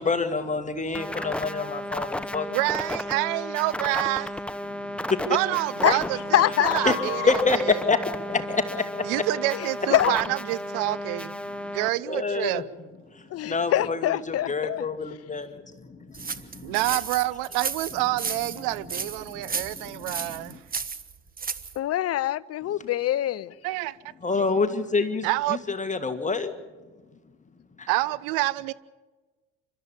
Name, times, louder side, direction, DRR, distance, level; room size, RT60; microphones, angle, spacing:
voice 1, 0.0-2.5 4.7-5.4 6.9-7.0 7.3-9.1 12.0-12.6 13.1-16.8 19.3-20.6 24.2-26.5 27.8-27.9, left 4 dB, 20° left, 1.8 m, -28 dB
sound 1, 0.9-11.9, left 1 dB, 5° left, 1.0 m, -33 dB
voice 2, 2.5-4.3 5.3-7.4 9.0-11.3 11.7-12.6 16.6-20.6 23.6-24.0 25.2-25.6 27.9-28.7, right 18 dB, 60° right, 0.8 m, -27 dB
voice 3, 6.3-7.3 9.5-10.1 13.3-14.8 21.8-23.5, left 13 dB, 40° left, 0.8 m, -25 dB
sound 2, 16.1-21.8, right 5 dB, 25° right, 1.3 m, -33 dB
29.5 x 13.0 x 7.1 m
hypercardioid pair, 65°, 37 cm